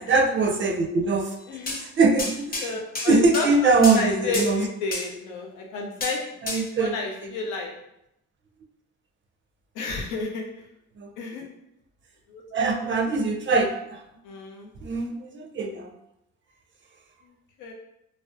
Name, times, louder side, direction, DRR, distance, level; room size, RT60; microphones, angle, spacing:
voice 1, 0.1-1.4 1.8-2.6 3.1-4.7 6.4-6.9 11.0-11.1 12.5-14.0 14.8-15.9, right 3 dB, 40° right, 2 dB, 0.4 m, -22 dB
sound 1, 1.7-1.8 2.2-2.7 2.9-3.5 3.8-4.0 4.3-4.5 4.9-5.0 6.0-6.1 6.5-6.6, left 2 dB, 30° left, 0.6 m, -30 dB
voice 2, 2.6-7.7 9.8-10.5 11.2-11.4 12.3-12.4 14.2-14.7 17.6-17.7, left 3 dB, 85° left, 0 dB, 0.5 m, -31 dB
2.5 x 2.0 x 2.4 m, 0.81 s
cardioid pair, 90°, 30 cm